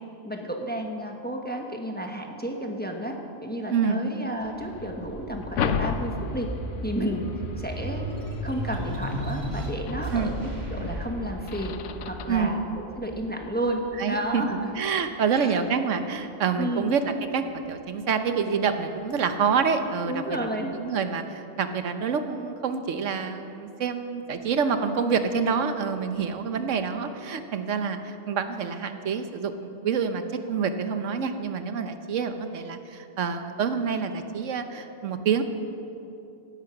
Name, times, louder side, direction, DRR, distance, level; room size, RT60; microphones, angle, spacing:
voice 1, 0.2-3.1 3.4-6.5 6.8-7.3 7.6-8.1 8.4-10.3 10.7-11.7 12.1-13.8 14.1-14.7 15.3-15.6 16.6-16.9 20.1-20.7, equal, 10° left, 2 dB, 1.1 m, -31 dB
voice 2, 3.7-4.0 10.1-10.3 12.3-12.6 14.0-14.4 14.7-17.0 17.3-35.4, right 6 dB, 90° right, 8 dB, 1.2 m, -27 dB
sound 1, 4.4-12.4, left 6 dB, 85° left, 1.0 m, -35 dB
sound 2, 4.4-15.2 15.7-16.9, right 1 dB, 35° right, 2.1 m, -36 dB
16.0 x 11.0 x 5.9 m, 2.8 s
omnidirectional pair, 1.2 m